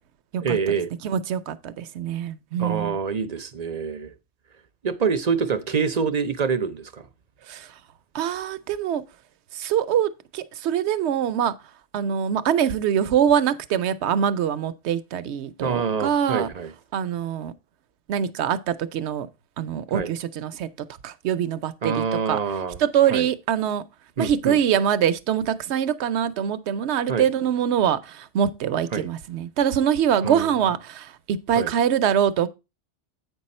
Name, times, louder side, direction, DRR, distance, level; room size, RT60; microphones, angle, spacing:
voice 1, 0.4-0.9 2.6-4.1 4.8-7.1 15.6-16.7 19.9-20.1 21.8-22.8 23.1-23.3 24.2-24.6 27.1-27.3 28.9-29.1 30.2-30.5 31.6-31.7, right 6 dB, 45° right, 0.6 m, -26 dB
voice 2, 1.0-3.0 7.5-7.7 8.1-9.0 9.5-11.5 11.9-16.5 16.9-17.5 18.1-19.3 19.6-20.7 21.0-22.4 22.8-23.8 24.2-32.5, right 9 dB, 70° right, 0.9 m, -24 dB
8.3 x 5.4 x 4.1 m
omnidirectional pair, 1.2 m